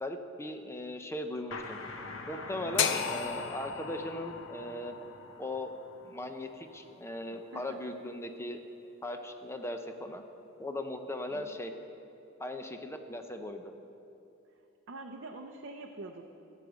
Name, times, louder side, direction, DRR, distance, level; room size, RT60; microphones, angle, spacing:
voice 1, 0.0-1.8 2.3-5.1 5.4-5.7 6.0-8.6 9.0-10.2 10.6-11.7 12.4-13.7, left 1 dB, 15° left, 6 dB, 0.6 m, -38 dB
sound 1, 1.5-6.9, left 3 dB, 80° left, 1.0 m, -46 dB
voice 2, 2.6-3.1 7.5-7.8 11.3-11.6 14.9-16.4, right 2 dB, 65° right, 2 dB, 0.6 m, -45 dB
sound 2, 2.8-6.9, left 7 dB, 65° left, 0.6 m, -35 dB
13.5 x 4.9 x 8.1 m, 2.9 s
head